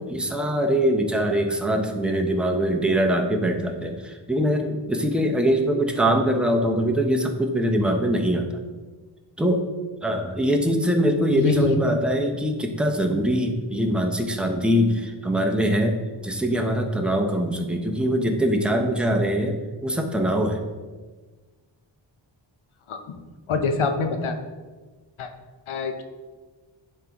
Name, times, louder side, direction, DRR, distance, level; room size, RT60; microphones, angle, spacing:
voice 1, 0.0-8.5 9.4-9.7 10.0-16.0 16.2-20.6, equal, ahead, 2 dB, 0.7 m, -23 dB
voice 2, 11.4-11.8 22.9-23.2 23.5-24.4 25.2-25.3 25.7-26.0, left 4 dB, 85° left, 6 dB, 0.7 m, -25 dB
10.5 x 3.8 x 2.9 m, 1.4 s
wide cardioid pair, 80°, 48 cm